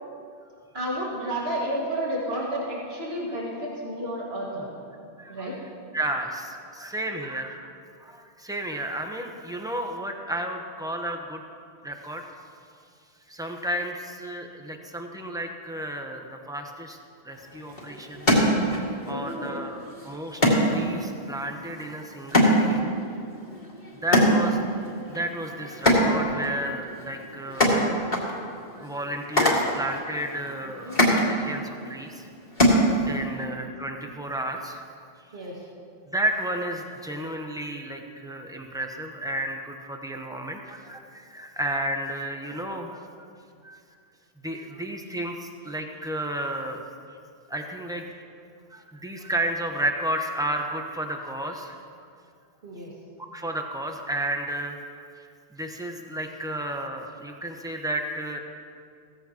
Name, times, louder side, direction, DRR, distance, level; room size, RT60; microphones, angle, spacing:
voice 1, 0.7-4.7 5.3-5.5 19.1-19.6 30.6-31.0 35.3-35.6 52.6-52.9, right 1 dB, 70° right, -4 dB, 2.2 m, -31 dB
voice 2, 5.2-5.6 5.9-7.7 8.0-11.4 11.8-12.5 13.3-17.0 17.2-22.9 24.0-24.6 25.1-28.1 28.8-32.3 32.6-32.7 33.0-34.8 36.1-43.3 43.6-43.8 44.4-46.8 47.5-48.1 48.7-52.1 53.3-58.4, right 1 dB, 5° right, 3 dB, 0.9 m, -32 dB
sound 1, 17.3-33.4, equal, 45° left, 2.2 m, -25 dB
16.5 x 14.5 x 3.0 m, 2.3 s
omnidirectional pair, 1.1 m